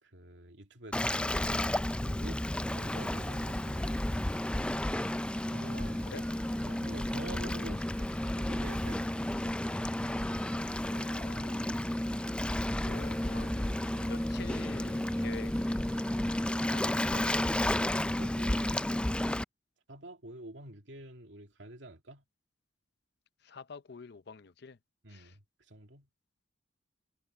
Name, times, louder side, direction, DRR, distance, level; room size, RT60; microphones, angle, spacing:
voice 1, 0.0-2.4 2.7-4.1 5.5-6.2 6.6-8.1 8.3-9.2 14.0-14.3 17.9-18.7 19.9-22.2 25.0-26.1, right 1 dB, 75° right, 2.5 m, -48 dB
Waves surf, 0.9-19.4, left 1 dB, 5° left, 0.3 m, -32 dB
sound 1, 2.8-16.9, right 3 dB, 55° right, 5.9 m, -56 dB
voice 2, 5.7-6.2 10.8-11.7 12.7-13.8 14.0-15.5 16.7-17.3 23.4-24.8 25.1-25.4, left 4 dB, 60° left, 0.6 m, -47 dB
head